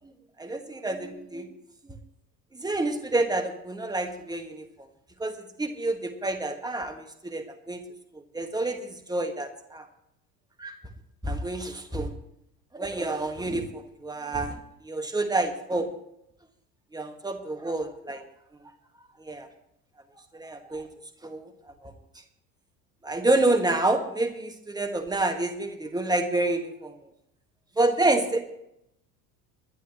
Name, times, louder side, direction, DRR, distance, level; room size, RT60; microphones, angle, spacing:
voice 1, 0.4-1.5 2.5-4.6 5.2-7.8 8.3-9.9 10.6-10.7 11.2-12.1 12.7-14.6 14.8-15.9 16.9-18.2 19.3-19.5 20.3-20.9 21.2-21.5 21.8-21.9 23.0-26.9 27.8-28.4, right 2 dB, 10° right, 6 dB, 1.7 m, -28 dB
21.5 x 11.0 x 3.1 m, 0.77 s
figure-of-eight pair, 65°, 49 cm